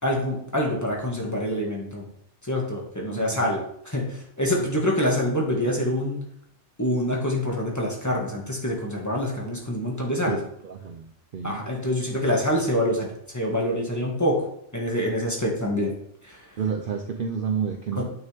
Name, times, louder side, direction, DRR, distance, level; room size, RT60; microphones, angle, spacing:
voice 1, 0.0-2.1 2.4-3.6 3.8-6.2 6.8-10.4 11.4-13.1 13.3-14.5 14.7-15.9 16.3-16.4 18.0-18.1, equal, 15° left, -2 dB, 1.8 m, -26 dB
voice 2, 3.1-3.5 10.3-10.4 10.6-11.6 12.5-12.6 16.6-18.0, right 7 dB, 55° right, 5 dB, 0.7 m, -30 dB
8.9 x 6.1 x 3.5 m, 0.70 s
omnidirectional pair, 1.2 m